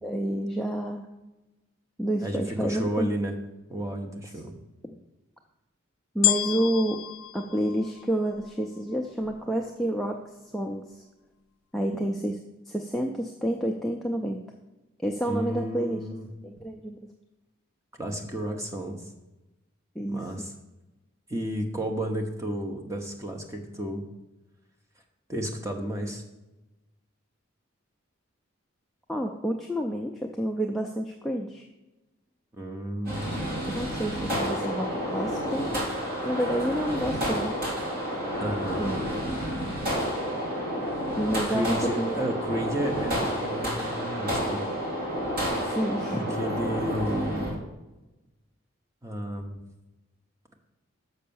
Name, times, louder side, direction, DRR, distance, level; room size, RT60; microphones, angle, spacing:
voice 1, 0.0-1.1 2.0-3.1 4.5-4.6 6.1-7.0 7.3-11.0 11.7-12.4 12.7-14.4 15.0-16.0 16.4-17.0 20.0-20.3 29.1-31.7 33.8-35.7 36.2-37.6 38.8-39.0 41.2-42.2 45.6-46.3, right 1 dB, ahead, 1 dB, 0.4 m, -29 dB
voice 2, 2.2-3.3 3.7-4.5 15.3-16.3 18.0-19.0 20.1-20.5 21.3-24.0 25.3-26.2 32.6-33.4 38.4-38.9 41.4-44.7 46.1-47.6 49.0-49.6, right 1 dB, 15° right, 3 dB, 0.9 m, -32 dB
sound 1, 6.2-8.6 9.3-9.4, left 15 dB, 85° left, 0.4 m, -29 dB
sound 2, 33.0-47.5, equal, 45° right, 2.7 m, -30 dB
6.5 x 5.5 x 6.9 m, 1.0 s
head